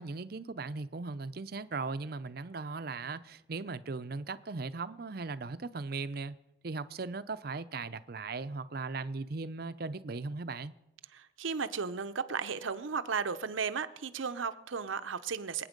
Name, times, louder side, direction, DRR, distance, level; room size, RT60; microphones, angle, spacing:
voice 1, 0.0-6.4 6.6-10.7, right 3 dB, 50° right, 0.6 m, -38 dB
voice 2, 11.1-15.7, right 5 dB, 90° right, 0.7 m, -35 dB
25.0 x 9.1 x 5.2 m
head